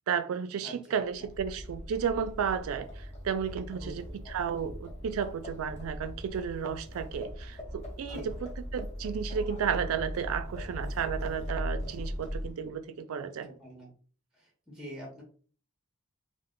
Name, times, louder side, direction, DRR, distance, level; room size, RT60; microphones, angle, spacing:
voice 1, 0.1-13.5, right 7 dB, 75° right, 0.3 m, -33 dB
voice 2, 0.6-1.0 3.8-3.9 4.2-4.3 8.1-8.3 13.2-13.9 14.4-15.2, equal, 5° right, 0.7 m, -45 dB
Livestock farm animals working animals, 1.1-12.7, equal, 30° left, 0.8 m, -39 dB
2.1 x 2.1 x 3.6 m
head